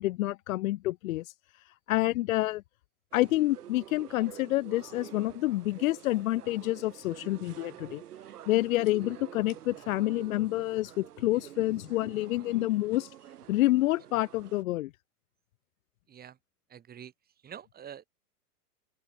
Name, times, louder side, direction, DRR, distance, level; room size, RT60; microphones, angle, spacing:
voice 1, 0.0-1.3 1.7-2.6 3.1-8.0 8.5-13.1 13.5-14.9, left 17 dB, 60° left, 0.5 m, -28 dB
sound 1, 3.1-14.6, right 11 dB, 70° right, 3.7 m, -48 dB
voice 2, 16.7-17.1 17.4-18.1, right 9 dB, 20° right, 2.3 m, -46 dB
open air
hypercardioid pair, 115°, 47 cm